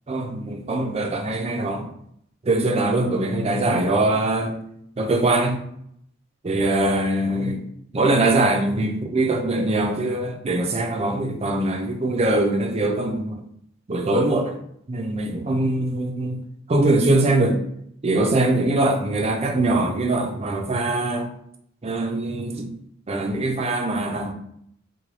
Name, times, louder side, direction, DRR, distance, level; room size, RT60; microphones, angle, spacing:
voice 1, 0.1-1.9 2.4-4.6 5.0-5.6 6.4-7.6 7.9-13.4 13.9-14.6 14.9-16.4 16.7-17.6 18.0-21.3 21.8-22.7 23.1-24.3, right 2 dB, 30° right, 0.5 m, -22 dB
3.1 x 2.2 x 4.0 m
head